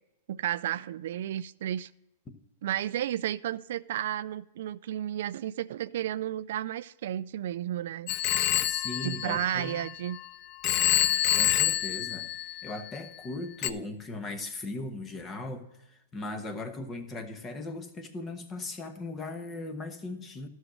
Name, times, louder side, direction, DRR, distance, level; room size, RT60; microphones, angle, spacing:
voice 1, 0.3-1.9 2.6-8.1 9.0-10.2, right 11 dB, 70° right, 17 dB, 0.3 m, -32 dB
Telephone, 8.1-10.2 10.6-13.0 13.6-13.7, left 13 dB, 35° left, 0.4 m, -27 dB
voice 2, 8.6-9.8 11.0-20.5, left 2 dB, 20° left, 8 dB, 1.1 m, -38 dB
12.5 x 6.4 x 4.9 m, 0.91 s
hypercardioid pair, 145°, 0 cm